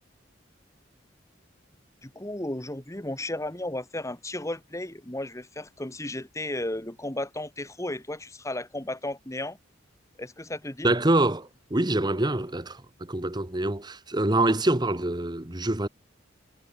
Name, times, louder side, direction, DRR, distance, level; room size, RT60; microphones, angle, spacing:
voice 1, 2.0-9.6 10.2-10.9, left 1 dB, 15° left, 1.7 m, -34 dB
voice 2, 10.8-15.9, right 2 dB, 20° right, 1.4 m, -25 dB
head